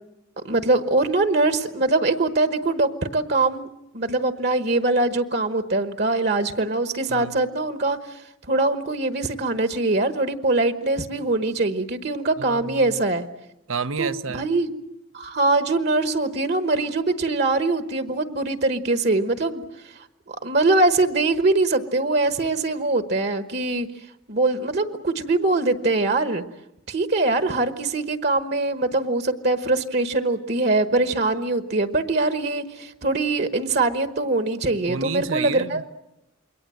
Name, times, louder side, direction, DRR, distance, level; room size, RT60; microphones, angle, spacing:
voice 1, 0.4-3.7 3.9-8.2 8.5-13.3 14.0-14.7 15.1-19.6 20.4-23.9 24.3-26.4 26.9-35.8, right 2 dB, 50° right, 1.2 m, -22 dB
voice 2, 12.4-13.0 13.7-14.5 34.9-36.0, right 5 dB, 85° right, 1.0 m, -30 dB
27.5 x 23.0 x 7.8 m
head